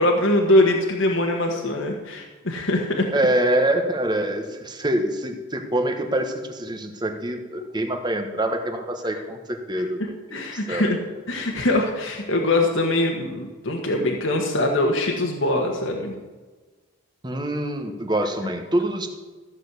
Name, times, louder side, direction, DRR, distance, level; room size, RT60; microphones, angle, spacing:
voice 1, 0.0-3.1 9.1-9.2 10.0-11.0 11.3-16.1, left 1 dB, 65° left, 1 dB, 1.4 m, -22 dB
voice 2, 3.1-10.9 17.2-19.1, right 1 dB, 20° right, 5 dB, 1.2 m, -25 dB
14.5 x 6.5 x 8.2 m, 1.3 s
head